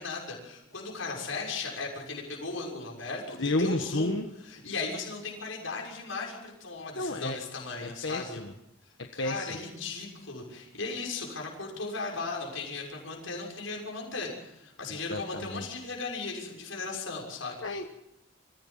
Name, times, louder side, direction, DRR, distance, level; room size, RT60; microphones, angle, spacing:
voice 1, 0.0-4.1 4.5-8.4 9.1-17.6, left 3 dB, 85° left, -1 dB, 6.5 m, -37 dB
voice 2, 3.4-4.3 6.9-7.4 7.8-8.5 9.0-9.6 14.9-15.7 17.6-17.9, left 2 dB, 65° left, 4 dB, 1.4 m, -32 dB
26.0 x 16.5 x 7.5 m, 0.85 s
head